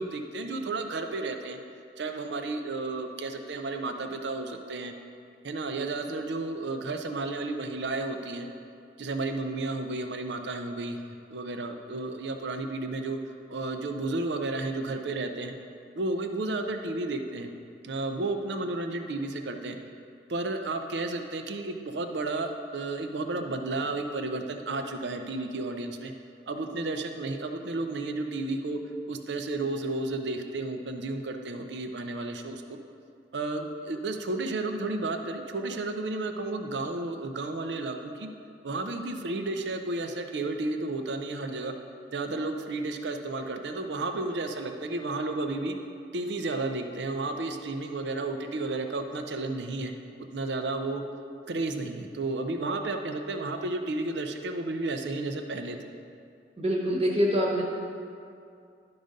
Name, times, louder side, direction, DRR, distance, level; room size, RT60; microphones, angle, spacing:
voice 1, 0.0-1.6 2.0-4.9 5.4-8.5 9.0-11.0 11.3-13.2 13.5-15.5 15.9-17.5 17.8-19.8 20.3-26.1 26.5-28.8 29.1-32.8 33.3-38.3 38.6-41.7 42.1-45.8 46.1-49.9 50.3-51.0 51.5-55.8, right 2 dB, 85° right, 6 dB, 0.6 m, -32 dB
voice 2, 56.6-57.6, equal, 35° right, -1 dB, 1.1 m, -25 dB
11.5 x 3.9 x 5.2 m, 2.4 s
head